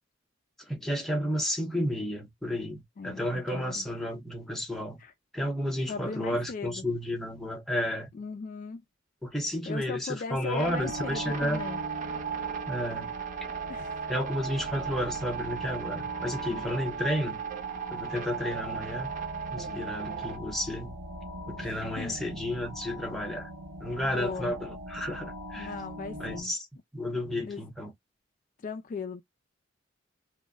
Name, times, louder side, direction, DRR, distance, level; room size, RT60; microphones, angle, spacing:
voice 1, 0.7-5.0 5.3-8.1 9.2-11.6 12.7-13.1 14.1-17.4 17.9-19.1 19.5-20.9 21.5-23.5 23.8-25.7 26.2-26.6 26.9-27.9, equal, ahead, 0.6 m, -32 dB
voice 2, 3.0-3.9 5.0-5.1 5.9-6.9 8.1-8.8 9.7-11.8 13.7-14.1 19.6-20.0 21.6-22.2 24.0-24.5 25.5-26.5 27.4-27.7 28.6-29.2, left 4 dB, 40° left, 0.3 m, -38 dB
sound 1, 10.5-20.4, right 8 dB, 40° right, 0.5 m, -37 dB
sound 2, 10.6-26.4, equal, 80° right, 0.7 m, -41 dB
2.1 x 2.1 x 3.4 m
head